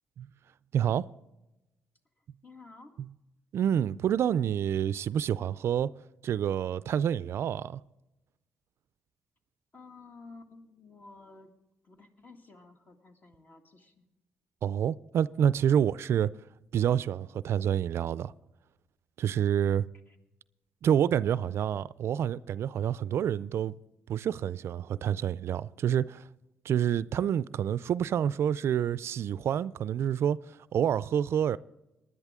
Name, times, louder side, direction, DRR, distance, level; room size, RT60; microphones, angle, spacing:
voice 1, 0.7-1.1 3.0-3.1 3.5-5.9 6.2-7.8 14.6-16.3 16.7-18.3 19.2-19.9 20.8-23.7 24.1-26.2 26.6-30.4 30.7-31.6, right 9 dB, 65° right, 0.4 m, -28 dB
voice 2, 2.4-2.9 9.7-11.5 11.8-14.1 20.1-20.2 21.3-21.6, left 3 dB, 40° left, 1.9 m, -52 dB
19.5 x 11.0 x 3.6 m
cardioid pair, 90°, 5 cm